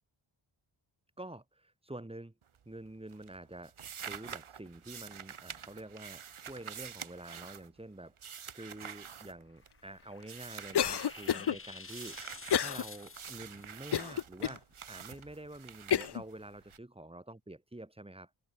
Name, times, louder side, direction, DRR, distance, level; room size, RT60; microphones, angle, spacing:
voice 1, 1.2-2.3 2.6-18.3, right 1 dB, 10° right, 3.0 m, -48 dB
sound 1, 2.4-2.9 3.1-9.9 10.2-11.4 11.9-16.8, right 8 dB, 75° right, 2.1 m, -47 dB
sound 2, 9.5-13.7, left 4 dB, 25° left, 1.0 m, -50 dB
Cough, 10.7-11.6 12.5-12.8 13.3-13.4 13.9-14.6 15.2-15.3 15.9-16.2, left 9 dB, 55° left, 0.8 m, -29 dB
wide cardioid pair, 160°, 50 cm